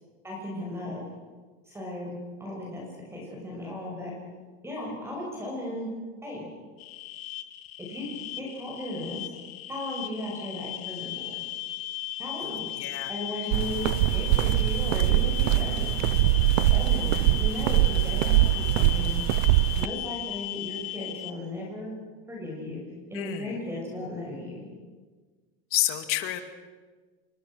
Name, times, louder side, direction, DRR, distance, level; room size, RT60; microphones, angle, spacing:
voice 1, 0.2-1.0 1.6-2.1 2.4-4.1 4.6-5.9 6.2-6.5 7.9-9.3 9.7-11.3 12.2-12.7 13.1-15.9 16.6-19.2 19.8-21.9 22.3-22.8 23.1-24.6, left 1 dB, 10° right, -2 dB, 6.6 m, -36 dB
sound 1, 6.8-21.3, left 14 dB, 75° left, 1.8 m, -36 dB
voice 2, 12.8-13.1 23.1-23.5 25.7-26.4, left 14 dB, 45° left, 7 dB, 2.5 m, -29 dB
sound 2, 13.5-19.9, right 17 dB, 85° right, 0.7 m, -23 dB
28.0 x 24.5 x 6.4 m, 1.4 s
cardioid pair, 160°, 30 cm